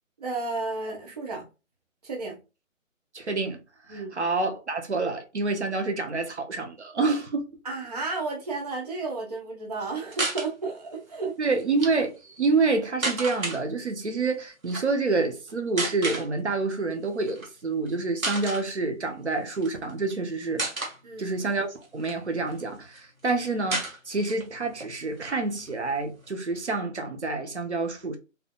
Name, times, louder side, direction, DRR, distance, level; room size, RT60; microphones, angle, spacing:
voice 1, 0.2-1.5 2.0-2.4 3.9-4.2 7.6-11.3 21.0-21.4, right 3 dB, 30° right, 0.8 m, -32 dB
voice 2, 3.1-3.6 3.9-7.5 11.4-20.6 21.2-28.2, right 3 dB, 55° right, 0.9 m, -28 dB
sound 1, 10.1-10.5 11.6-11.9 13.0-13.6 14.6-14.8 15.8-16.3 17.3-17.5 17.9-18.0 18.2-18.6 19.5-20.2 20.6-21.0 21.6-22.6 22.9-23.0 23.2-23.3 23.7-24.5 24.8-24.9 25.2-26.3, right 2 dB, 80° right, 1.6 m, -31 dB
4.3 x 2.7 x 2.3 m
figure-of-eight pair, 150°, 41 cm